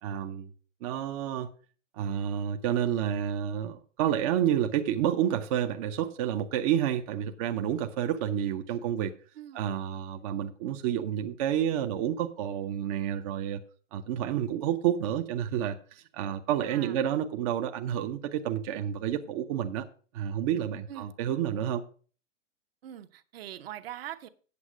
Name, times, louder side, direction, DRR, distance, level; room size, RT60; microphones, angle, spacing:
voice 1, 0.0-0.5 0.8-1.5 1.9-9.1 9.5-13.6 13.9-19.9 20.1-21.8, right 10 dB, 30° right, 0.5 m, -29 dB
voice 2, 9.3-9.7 16.6-17.0 20.9-21.1 22.8-24.3, right 12 dB, 50° right, 1.0 m, -42 dB
8.3 x 7.2 x 6.0 m
hypercardioid pair, 135°, 38 cm